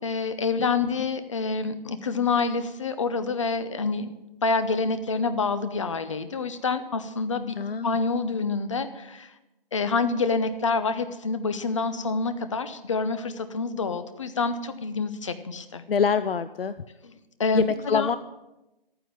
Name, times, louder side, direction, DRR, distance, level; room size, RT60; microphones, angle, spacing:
voice 1, 0.0-7.6 7.8-9.3 9.7-15.8 17.0-17.1 17.4-18.1, left 4 dB, 35° left, 11 dB, 0.8 m, -27 dB
voice 2, 7.6-8.0 15.9-16.8 17.5-18.2, left 6 dB, 75° left, 13 dB, 0.6 m, -25 dB
12.0 x 9.5 x 7.7 m, 0.97 s
hypercardioid pair, 170°, 29 cm